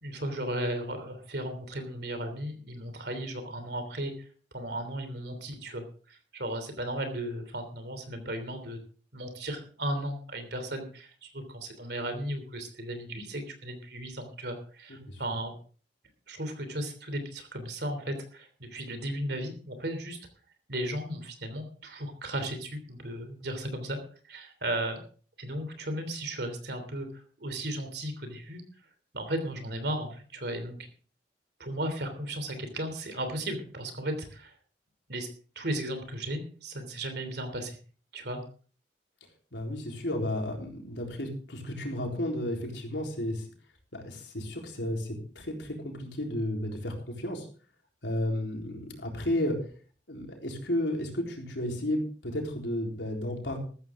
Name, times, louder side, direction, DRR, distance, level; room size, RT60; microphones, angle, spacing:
voice 1, 0.0-4.1 4.5-8.8 9.1-15.5 16.3-20.2 20.7-24.0 24.3-25.0 25.4-27.1 27.4-28.6 29.1-30.9 31.6-34.5 35.1-35.3 35.5-37.8 38.1-38.4, right 1 dB, 60° right, 8 dB, 3.2 m, -35 dB
voice 2, 39.5-43.4 43.9-47.5 48.0-49.6 50.1-53.6, left 1 dB, 75° left, 2 dB, 4.0 m, -32 dB
14.0 x 13.5 x 3.7 m, 0.41 s
head